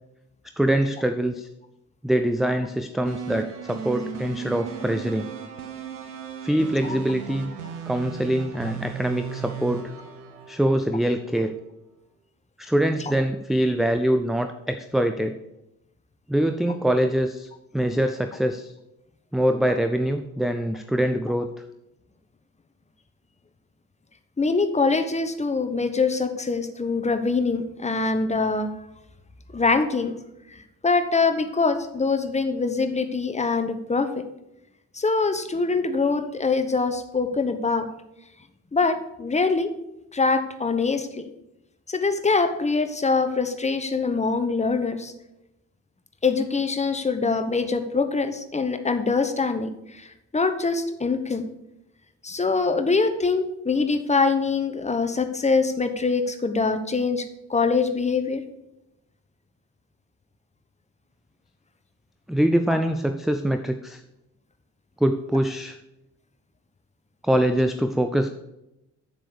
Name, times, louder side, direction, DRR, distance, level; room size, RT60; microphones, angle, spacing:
voice 1, 0.6-1.5 2.0-5.3 6.4-7.5 7.9-9.9 10.5-11.6 12.6-15.4 16.3-18.7 19.3-21.5 62.3-64.0 65.0-65.8 67.2-68.3, right 1 dB, ahead, 7 dB, 0.3 m, -24 dB
sound 1, 3.0-11.2, right 8 dB, 75° right, 1.2 m, -36 dB
voice 2, 24.4-28.7 29.5-30.1 30.8-34.1 34.9-37.9 38.7-39.7 40.1-41.3 41.9-45.1 46.2-49.7 50.3-51.5 52.2-57.2 57.5-58.4, left 4 dB, 15° left, 9 dB, 1.0 m, -23 dB
7.4 x 7.0 x 6.5 m, 0.90 s
figure-of-eight pair, 45°, 45 cm